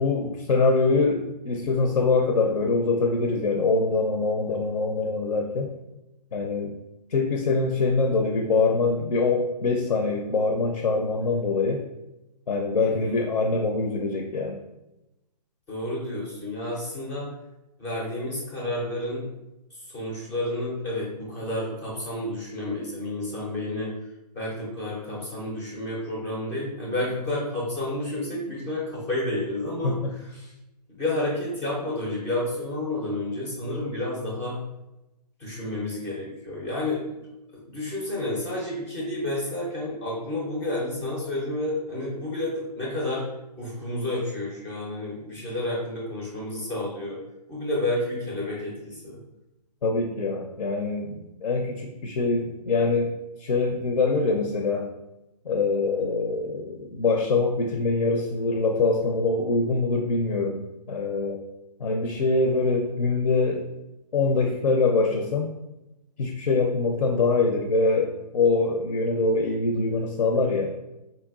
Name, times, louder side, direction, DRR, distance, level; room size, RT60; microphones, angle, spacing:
voice 1, 0.0-5.7 6.3-6.7 7.1-11.8 12.5-14.6 29.8-30.1 49.8-53.1 53.4-54.9 55.4-60.6 60.9-61.4 61.8-63.6 64.1-65.5 66.2-70.7, left 3 dB, 75° left, 2 dB, 0.5 m, -24 dB
voice 2, 15.7-17.3 17.8-19.3 19.7-23.9 24.3-30.5 30.9-34.6 35.4-37.2 37.7-43.3 43.6-47.2 47.5-49.2, left 1 dB, 10° left, -4 dB, 0.4 m, -30 dB
3.8 x 2.1 x 2.3 m, 0.93 s
hypercardioid pair, 145°, 21 cm